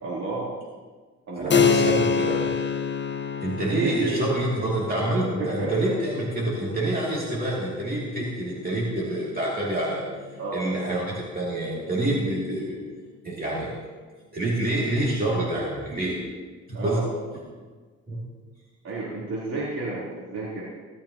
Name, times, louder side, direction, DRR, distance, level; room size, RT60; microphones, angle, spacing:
voice 1, 0.0-0.5 1.3-1.6 3.6-4.1 5.4-5.7 10.4-10.7 16.7-17.1 18.8-20.6, right 3 dB, 55° right, -7 dB, 3.5 m, -31 dB
voice 2, 1.4-2.5 3.4-10.0 10.5-12.8 13.2-13.7 14.3-16.2 16.7-17.0 18.1-18.2, right 1 dB, 30° right, -5 dB, 2.6 m, -27 dB
Keyboard (musical), 1.5-11.7, left 6 dB, 40° left, 1.1 m, -29 dB
17.5 x 12.5 x 2.9 m, 1.4 s
cardioid pair, 90°, 30 cm